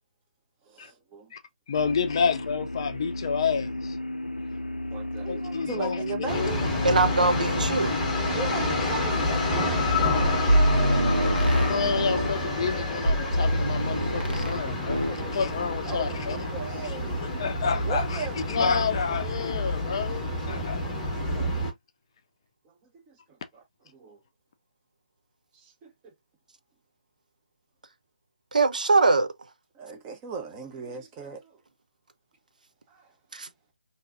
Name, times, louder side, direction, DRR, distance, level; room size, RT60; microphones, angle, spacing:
voice 1, 0.7-1.3 1.8-1.9 4.9-6.6 8.3-9.7 14.9-17.3 17.8-18.5 20.6-20.8 22.6-23.6 23.9-24.2 25.5-26.1 29.7-31.6 32.9-33.1, right 5 dB, 15° right, 0.8 m, -38 dB
sound 1, 1.7-12.1, left 1 dB, 85° left, 0.5 m, -34 dB
voice 2, 1.7-4.0 5.3-6.5 11.5-16.4 17.2-20.8 21.3-21.5, left 6 dB, 35° left, 0.5 m, -29 dB
sound 2, 6.3-21.7, left 2 dB, 10° left, 0.9 m, -29 dB
voice 3, 6.8-7.9 28.5-29.3 33.3-33.5, right 3 dB, 60° right, 0.5 m, -22 dB
sound 3, 10.2-12.4 13.1-14.6 14.9-15.2, equal, 85° right, 1.2 m, -24 dB
3.8 x 2.7 x 2.6 m
figure-of-eight pair, 145°, 5 cm